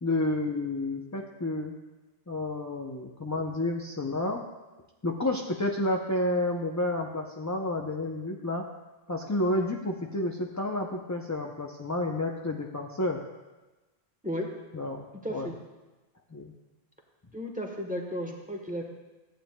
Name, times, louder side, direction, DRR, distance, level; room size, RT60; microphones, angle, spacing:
voice 1, 0.0-1.7 2.3-4.4 5.0-8.6 9.1-13.2 14.7-15.5 16.3-16.5, left 1 dB, 25° left, 0 dB, 0.5 m, -30 dB
voice 2, 15.2-15.6 17.3-18.8, equal, 10° right, 0 dB, 1.1 m, -34 dB
14.5 x 9.0 x 2.2 m, 1.2 s
omnidirectional pair, 1.1 m